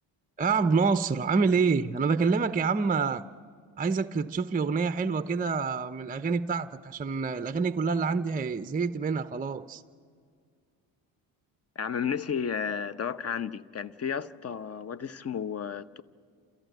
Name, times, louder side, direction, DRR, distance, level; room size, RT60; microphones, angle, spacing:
voice 1, 0.4-3.2 3.8-9.8, right 5 dB, 20° right, 0.6 m, -27 dB
voice 2, 11.8-16.0, left 7 dB, 30° left, 0.9 m, -32 dB
28.5 x 14.0 x 9.2 m
supercardioid pair, 60°, 47 cm